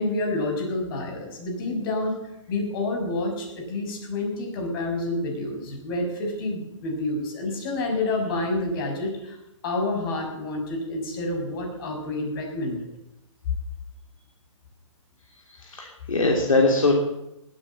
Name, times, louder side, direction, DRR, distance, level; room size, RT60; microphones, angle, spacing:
voice 1, 0.0-2.1 2.5-12.9, left 2 dB, 45° left, 2 dB, 6.1 m, -28 dB
voice 2, 15.4-17.0, left 2 dB, 85° left, 1 dB, 3.2 m, -22 dB
19.5 x 9.2 x 7.6 m, 0.86 s
hypercardioid pair, 140°, 17 cm